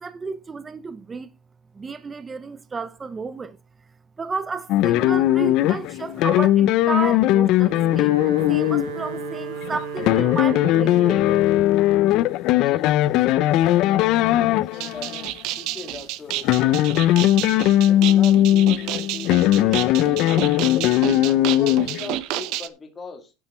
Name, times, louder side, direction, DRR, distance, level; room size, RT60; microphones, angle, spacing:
voice 1, 0.0-1.3 1.7-3.6 4.2-11.4, right 4 dB, 15° right, 0.5 m, -32 dB
sound 1, 4.7-15.3 16.3-22.2, left 14 dB, 45° left, 0.5 m, -19 dB
Wind instrument woodwind instrument, 7.5-11.7, right 6 dB, 80° right, 3.7 m, -34 dB
voice 2, 12.5-17.0 17.8-20.7 21.2-23.3, left 4 dB, 15° left, 2.1 m, -40 dB
sound 2, 14.7-22.7, right 15 dB, 50° right, 0.8 m, -30 dB
10.0 x 8.1 x 4.3 m
cardioid pair, 175°, 0 cm